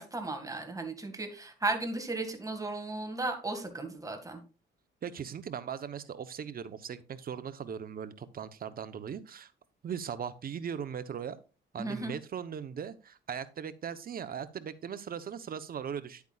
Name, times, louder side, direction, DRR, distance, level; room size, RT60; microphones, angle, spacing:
voice 1, 0.0-4.4 11.8-12.1, right 2 dB, 15° right, 6 dB, 2.0 m, -35 dB
voice 2, 5.0-9.5 9.8-11.4 11.7-16.2, right 7 dB, 50° right, 13 dB, 0.9 m, -39 dB
9.8 x 8.3 x 2.4 m, 0.33 s
cardioid pair, 90°, 20 cm